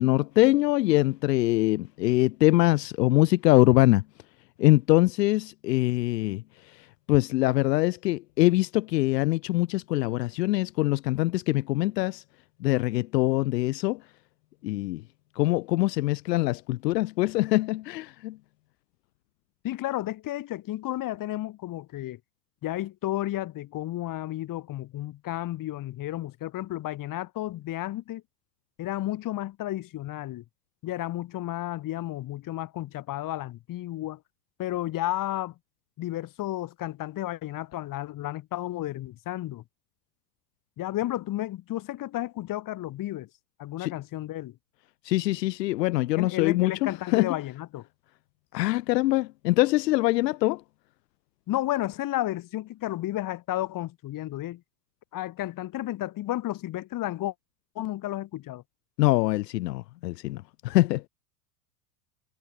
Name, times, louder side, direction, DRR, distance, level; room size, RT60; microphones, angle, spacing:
voice 1, 0.0-4.0 4.6-12.2 12.6-14.0 14.6-15.0 15.4-18.4 43.8-43.9 45.0-47.3 48.5-50.6 59.0-61.1, left 18 dB, 75° left, 0.8 m, -24 dB
voice 2, 19.6-22.2 22.6-28.2 28.8-30.4 30.8-34.2 34.6-35.5 36.0-39.6 40.8-43.3 43.6-44.6 46.2-47.9 51.5-54.6 55.1-57.3 57.8-58.6, left 15 dB, 40° left, 3.7 m, -32 dB
hypercardioid pair, 105°, 50 cm